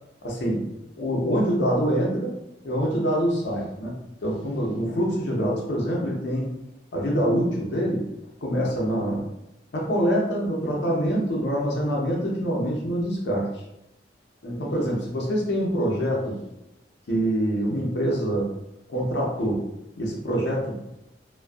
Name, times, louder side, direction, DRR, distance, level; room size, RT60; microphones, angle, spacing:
voice 1, 0.2-0.6 1.0-2.3 2.6-3.9 4.2-6.5 6.9-8.0 8.4-9.2 9.7-13.6 14.4-16.4 17.1-18.5 18.9-19.6 20.0-20.8, equal, 75° left, -2 dB, 0.6 m, -25 dB
2.5 x 2.2 x 2.2 m, 0.84 s
head